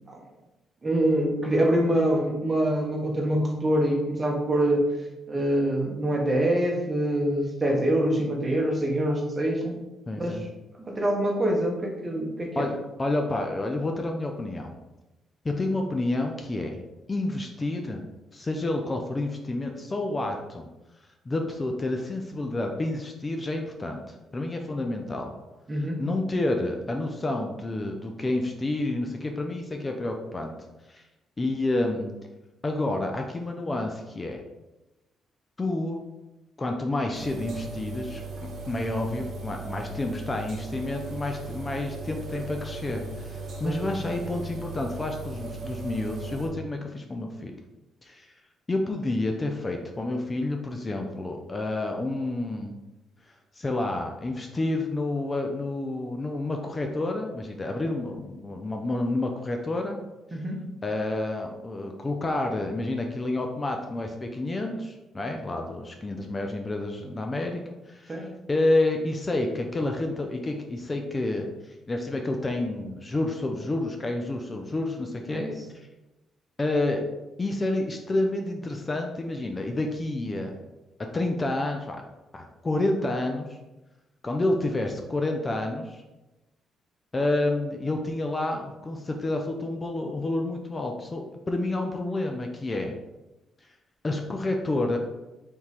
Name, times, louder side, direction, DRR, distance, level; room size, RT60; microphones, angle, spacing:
voice 1, 0.8-4.9 5.3-9.8 10.2-10.4 10.9-12.7 25.7-26.0 43.6-43.8 60.3-60.6 68.1-68.3 75.3-75.5, right 1 dB, 25° right, 0 dB, 1.1 m, -25 dB
voice 2, 10.1-10.4 12.6-14.8 15.4-16.8 17.1-18.0 18.3-20.7 21.3-25.3 26.0-30.5 30.9-31.0 31.4-32.1 32.6-34.4 35.6-36.0 36.6-38.2 38.7-47.5 48.0-48.3 48.7-52.8 53.6-60.0 60.8-75.4 75.7-75.9 76.6-77.0 77.4-80.6 81.1-82.0 82.3-83.6 84.2-86.0 87.1-92.9 94.0-95.0, left 2 dB, 25° left, 3 dB, 0.5 m, -29 dB
sound 1, 37.1-46.5, right 2 dB, 60° right, 1.0 m, -37 dB
3.7 x 2.9 x 4.2 m, 1.0 s
cardioid pair, 90°, 0 cm